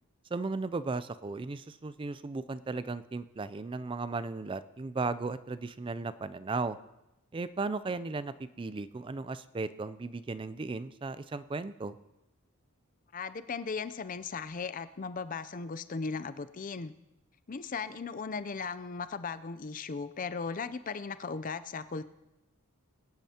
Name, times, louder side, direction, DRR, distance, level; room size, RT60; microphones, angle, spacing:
voice 1, 0.3-6.8 7.3-12.0, right 3 dB, 25° right, 14 dB, 0.3 m, -36 dB
voice 2, 13.1-16.9 17.5-22.0, left 5 dB, 40° left, 13 dB, 0.5 m, -37 dB
21.5 x 10.5 x 2.9 m, 0.95 s
head